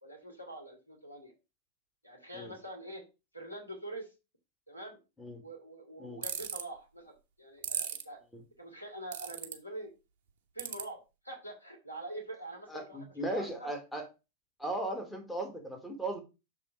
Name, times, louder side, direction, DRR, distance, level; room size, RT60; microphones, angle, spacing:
voice 1, 0.0-1.3 2.0-3.0 3.3-4.1 4.7-5.0 5.4-8.2 8.6-9.9 10.5-11.0 11.2-13.7, right 1 dB, 85° left, 3 dB, 2.1 m, -45 dB
sound 1, 6.2-6.6 7.6-8.0 9.1-9.5 10.6-10.8, right 9 dB, 55° right, 1.0 m, -35 dB
voice 2, 12.7-14.1 14.6-16.2, right 1 dB, 5° left, 2 dB, 1.8 m, -37 dB
6.9 x 3.6 x 4.5 m, 0.28 s
figure-of-eight pair, 90°, 0 cm